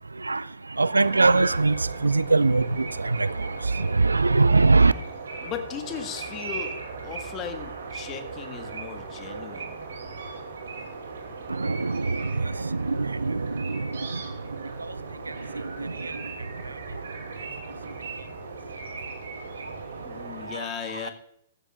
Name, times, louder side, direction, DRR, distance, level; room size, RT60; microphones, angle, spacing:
voice 1, 0.1-4.9 11.5-14.3 14.8-15.0 15.2-16.3 16.6-16.7 20.4-21.1, right 3 dB, 80° right, 0.4 m, -23 dB
sound 1, 1.0-20.5, right 4 dB, 65° right, 2.6 m, -38 dB
voice 2, 5.4-6.8 7.0-9.7 20.0-21.1, left 8 dB, 25° left, 1.6 m, -37 dB
15.0 x 13.5 x 2.5 m
figure-of-eight pair, 115°, 0 cm